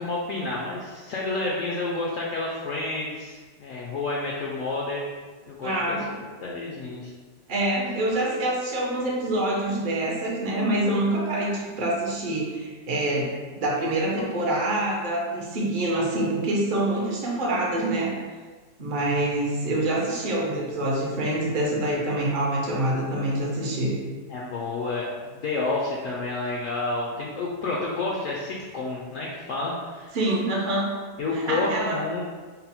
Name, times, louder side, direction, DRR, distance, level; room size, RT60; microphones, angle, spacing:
voice 1, 0.0-5.0 5.5-7.1 24.3-30.1 31.2-32.2, left 3 dB, 70° left, -4 dB, 0.8 m, -30 dB
voice 2, 5.6-6.1 7.5-13.3 13.6-18.1 18.8-24.0 30.1-30.9 31.3-32.0, right 1 dB, 60° right, -3 dB, 0.5 m, -26 dB
3.9 x 2.0 x 4.2 m, 1.4 s
omnidirectional pair, 1.8 m